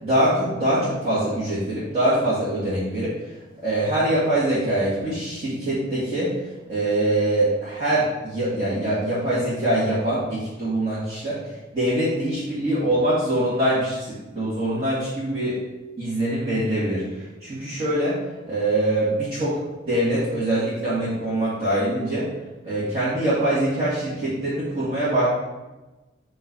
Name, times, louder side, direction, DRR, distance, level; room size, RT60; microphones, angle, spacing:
voice 1, 0.0-3.1 3.6-6.3 6.7-11.4 11.7-15.6 16.0-18.2 18.5-19.6 19.9-22.3 22.6-25.3, right 1 dB, 30° right, -11 dB, 2.0 m, -23 dB
7.9 x 3.1 x 5.3 m, 1.1 s
head